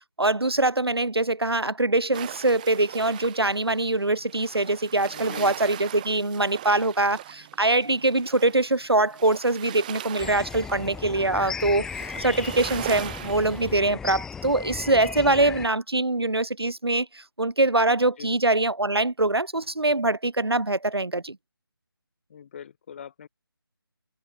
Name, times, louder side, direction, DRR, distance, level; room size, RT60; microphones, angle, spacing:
voice 1, 0.2-11.9 12.2-21.4, right 2 dB, 90° right, 1.5 m, -23 dB
sound 1, 2.1-13.7, right 13 dB, 20° right, 2.4 m, -40 dB
voice 2, 5.1-5.6 18.2-18.4 22.3-23.3, left 8 dB, 30° left, 3.6 m, -42 dB
sound 2, 10.2-15.7, left 6 dB, 5° left, 2.2 m, -36 dB
figure-of-eight pair, 160°, 13 cm